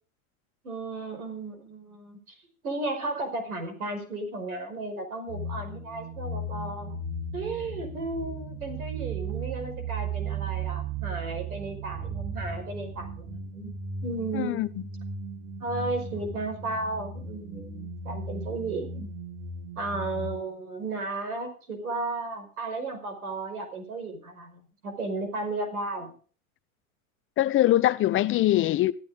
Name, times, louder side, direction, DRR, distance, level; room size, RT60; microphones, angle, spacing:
voice 1, 0.6-2.4 2.6-7.0 7.3-13.7 14.0-14.7 15.6-19.1 19.8-26.1, right 2 dB, 80° right, 5.6 m, -34 dB
sound 1, 5.3-20.4, right 4 dB, 50° right, 2.8 m, -36 dB
voice 2, 14.3-14.7 27.4-28.9, left 14 dB, 30° left, 0.6 m, -22 dB
14.5 x 14.0 x 3.9 m
hypercardioid pair, 95°, 43 cm